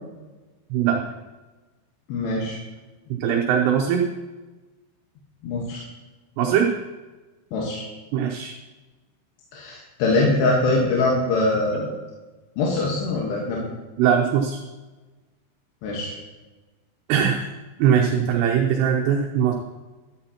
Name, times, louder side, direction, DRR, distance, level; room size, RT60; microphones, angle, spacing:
voice 1, 0.7-1.0 3.2-4.0 6.4-6.7 8.1-8.5 14.0-14.6 17.1-17.4 17.8-19.5, right 8 dB, 75° right, 0 dB, 2.8 m, -20 dB
voice 2, 2.1-2.6 5.4-5.8 7.5-7.8 9.5-11.9 12.6-13.6 15.8-16.1, left 2 dB, 70° left, -3 dB, 3.3 m, -23 dB
12.0 x 12.0 x 2.9 m, 1.2 s
omnidirectional pair, 5.3 m